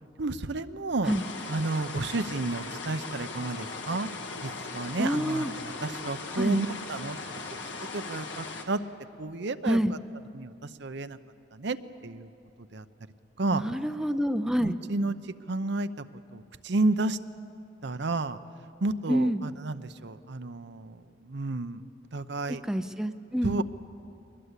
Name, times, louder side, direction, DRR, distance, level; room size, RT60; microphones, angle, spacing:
voice 1, 0.2-1.1 1.5-4.1 4.4-5.5 5.8-7.2 7.9-8.8 9.2-9.8 10.3-11.2 11.5-11.8 12.0-12.3 12.7-12.8 13.4-13.6 14.6-15.1 15.5-16.0 16.3-17.2 17.8-18.4 18.8-21.0 21.2-21.8 22.1-22.6 23.4-23.6, right 2 dB, 65° right, 11 dB, 0.8 m, -31 dB
sound 1, 1.0-8.7, left 3 dB, 70° left, 2.0 m, -39 dB
voice 2, 5.0-5.5 6.4-6.6 9.7-9.9 13.5-14.8 19.1-19.4 22.5-23.6, equal, 5° right, 8 dB, 0.5 m, -27 dB
23.0 x 20.5 x 8.3 m, 2.9 s
head